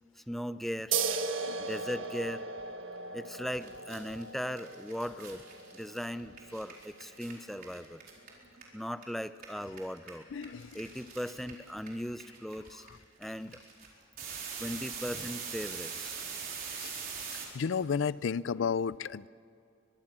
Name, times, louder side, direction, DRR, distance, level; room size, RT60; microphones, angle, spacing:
voice 1, 0.3-1.0 1.6-2.4 3.1-5.4 5.7-8.0 8.7-10.3 10.7-12.8 13.2-13.6 14.6-16.2, equal, ahead, 12 dB, 0.5 m, -38 dB
sound 1, 0.9-8.0, right 5 dB, 85° right, 1.4 m, -38 dB
sound 2, 3.3-3.4 3.5-9.0 9.3-17.4, right 6 dB, 50° right, 4.3 m, -42 dB
voice 2, 10.3-10.8 16.8-17.1 17.5-19.3, left 6 dB, 75° left, 20 dB, 0.4 m, -32 dB
23.5 x 22.5 x 6.1 m, 2.5 s
head